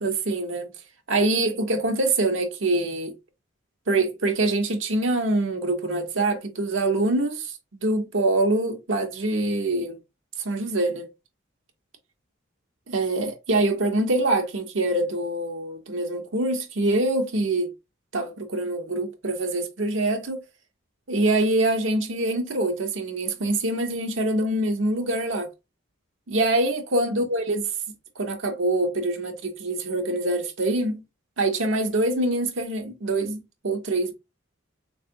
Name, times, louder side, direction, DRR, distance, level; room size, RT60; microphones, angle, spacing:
voice 1, 0.0-0.7 1.1-3.1 3.9-7.5 7.8-10.0 10.4-11.1 12.9-17.7 18.1-20.4 21.1-25.5 26.3-27.6 28.2-31.0 31.4-34.1, right 2 dB, 70° right, 1.0 m, -24 dB
3.5 x 3.2 x 2.8 m
head